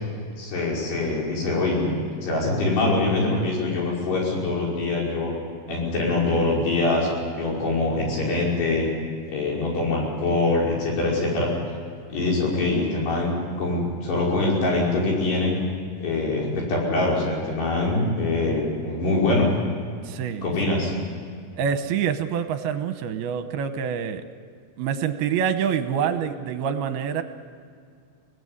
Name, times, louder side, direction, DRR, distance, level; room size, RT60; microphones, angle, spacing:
voice 1, 0.4-5.3 5.7-7.1 7.4-8.9 9.3-11.5 12.1-15.6 16.0-19.5 20.4-20.9, left 2 dB, 85° left, -3 dB, 7.6 m, -24 dB
voice 2, 20.0-20.7 21.6-24.3 24.8-27.2, right 8 dB, 80° right, 9 dB, 2.9 m, -26 dB
25.0 x 18.0 x 9.8 m, 2.2 s
omnidirectional pair, 4.6 m